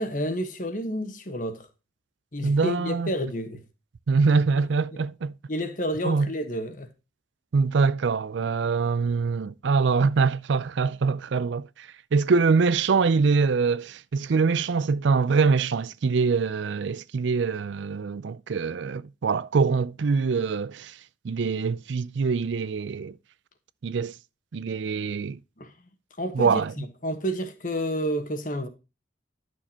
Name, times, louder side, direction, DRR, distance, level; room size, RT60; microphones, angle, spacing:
voice 1, 0.0-1.7 2.3-3.6 5.5-6.9 25.6-25.7 26.2-28.7, equal, 45° left, 1.3 m, -30 dB
voice 2, 2.4-3.1 4.1-5.3 6.0-6.3 7.5-21.0 21.2-23.2 23.8-24.1 24.5-25.4 26.3-26.7, right 4 dB, 75° right, 0.4 m, -24 dB
11.5 x 6.4 x 2.9 m
head